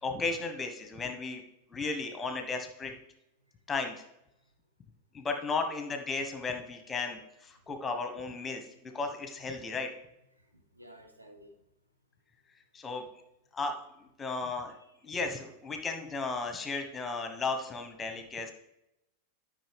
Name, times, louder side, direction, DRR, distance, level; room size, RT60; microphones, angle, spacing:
voice 1, 0.0-1.4 1.7-2.9 3.7-3.9 5.1-9.9 12.7-13.0 13.5-14.7 15.0-18.5, left 4 dB, 15° left, 6 dB, 1.2 m, -35 dB
voice 2, 5.3-5.6 10.4-11.6 14.8-15.0, equal, 85° right, 3 dB, 1.2 m, -55 dB
12.0 x 5.4 x 3.4 m, 0.88 s
figure-of-eight pair, 90°, 0 cm